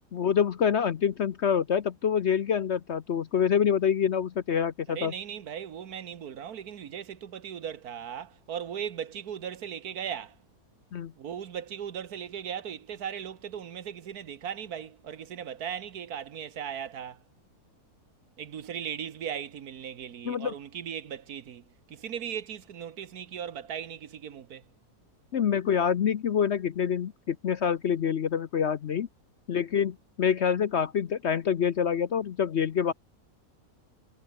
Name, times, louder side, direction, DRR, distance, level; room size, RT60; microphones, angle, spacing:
voice 1, 0.1-5.1 10.9-11.1 20.2-20.5 25.3-29.1 29.5-32.9, left 7 dB, 55° left, 0.9 m, -26 dB
voice 2, 4.9-10.4 11.1-17.2 18.4-24.6, right 8 dB, 70° right, 1.6 m, -38 dB
omnidirectional pair, 1.7 m